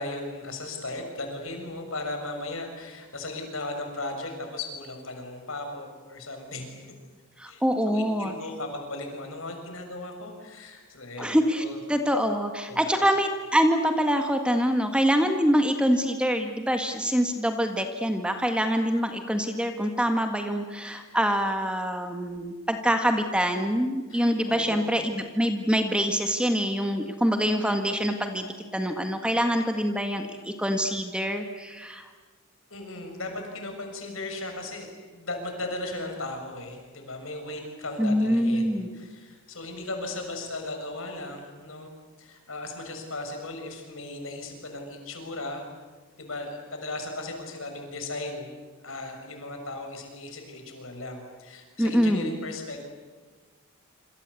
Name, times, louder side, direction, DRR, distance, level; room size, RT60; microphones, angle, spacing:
voice 1, 0.0-6.9 7.5-11.8 12.7-13.0 24.1-25.1 32.7-41.9 42.2-45.7 46.2-48.5 48.8-52.8, left 2 dB, 70° left, 4 dB, 6.8 m, -37 dB
voice 2, 7.4-8.3 11.2-28.5 28.7-32.1 38.0-38.9 51.8-52.3, equal, 5° right, 6 dB, 1.7 m, -25 dB
27.0 x 26.5 x 8.4 m, 1.4 s
head